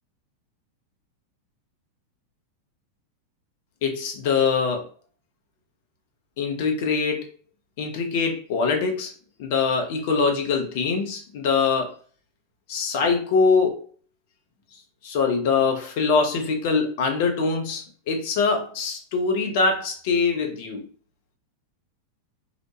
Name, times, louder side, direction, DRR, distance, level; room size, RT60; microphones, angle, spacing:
voice 1, 3.8-4.9 6.4-7.3 7.8-9.1 9.4-12.0 12.7-13.9 15.0-20.9, left 4 dB, 50° left, 4 dB, 0.7 m, -23 dB
2.9 x 2.1 x 2.9 m, 0.41 s
figure-of-eight pair, 90°, 0 cm